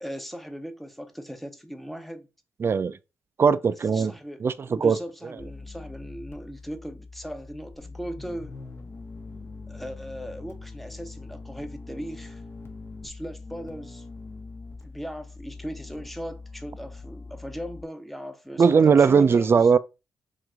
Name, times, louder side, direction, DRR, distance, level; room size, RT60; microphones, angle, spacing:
voice 1, 0.0-2.3 3.9-8.6 9.7-12.4 13.0-14.0 14.8-19.7, equal, ahead, 0.7 m, -38 dB
voice 2, 2.6-2.9 3.4-4.1 4.4-5.0 18.6-19.8, right 6 dB, 45° right, 0.3 m, -19 dB
sound 1, 5.4-17.8, left 3 dB, 50° left, 0.9 m, -42 dB
3.0 x 2.5 x 3.5 m
supercardioid pair, 45°, 6 cm